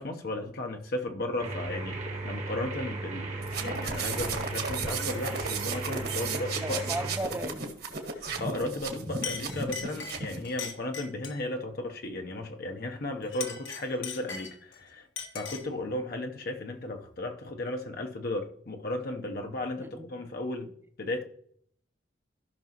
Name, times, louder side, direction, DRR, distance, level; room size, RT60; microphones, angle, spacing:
voice 1, 0.0-6.8 8.1-15.1 15.3-20.7 21.0-21.2, left 1 dB, 50° left, 0.8 m, -35 dB
sound 1, 1.4-7.2, right 3 dB, 35° right, 1.1 m, -36 dB
sound 2, 3.4-10.4, right 4 dB, 55° right, 1.7 m, -35 dB
voice 2, 6.6-7.6 19.8-20.2, right 1 dB, 10° right, 0.5 m, -36 dB
Chink clink, 8.7-8.9 9.2-11.5 13.2-14.8 15.2-15.8, left 6 dB, 80° left, 1.3 m, -39 dB
15.0 x 6.0 x 2.9 m
head